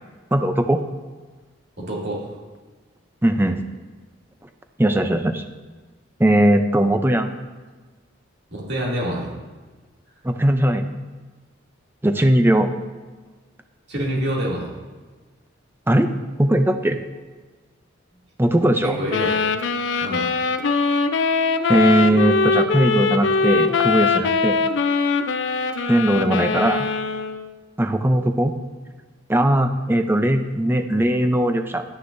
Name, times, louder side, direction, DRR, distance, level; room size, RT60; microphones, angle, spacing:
voice 1, 0.3-0.8 3.2-3.6 4.8-5.4 6.2-7.3 10.2-10.9 12.0-12.7 15.9-16.1 16.4-17.0 18.4-19.0 21.7-24.6 25.9-26.9 27.8-28.5 29.3-31.8, right 1 dB, 10° right, 7 dB, 0.5 m, -19 dB
voice 2, 1.8-2.3 8.5-9.3 13.9-14.7 18.8-19.3 20.0-20.3, right 1 dB, 55° right, -4 dB, 2.5 m, -26 dB
sound 1, 19.1-27.5, left 4 dB, 60° left, 0.5 m, -22 dB
11.0 x 9.8 x 2.6 m, 1.3 s
head